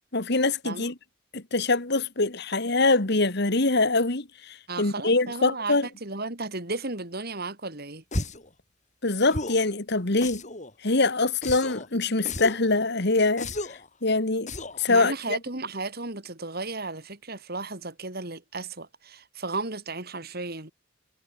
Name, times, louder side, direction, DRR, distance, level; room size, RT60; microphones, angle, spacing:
voice 1, 0.1-0.9 1.3-5.9 9.0-10.4 10.8-13.5 14.0-14.5 14.8-15.4, left 3 dB, 55° left, 1.9 m, -24 dB
voice 2, 4.7-8.0 14.9-20.7, right 3 dB, 50° right, 3.6 m, -34 dB
sound 1, 8.1-8.5 9.3-9.7 10.2-10.7 11.4-11.9 12.3-12.7 13.4-13.9 14.5-14.9, left 2 dB, 35° left, 7.5 m, -33 dB
head